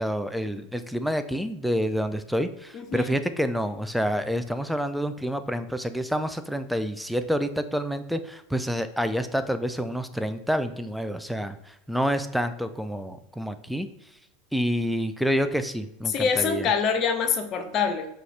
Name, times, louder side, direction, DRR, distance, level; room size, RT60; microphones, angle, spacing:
voice 1, 0.0-13.9 14.5-16.7, equal, ahead, 10 dB, 0.3 m, -28 dB
voice 2, 2.7-3.1 16.1-18.1, left 6 dB, 40° left, 6 dB, 0.7 m, -25 dB
4.8 x 2.4 x 3.2 m, 0.84 s
hypercardioid pair, 95°, 0 cm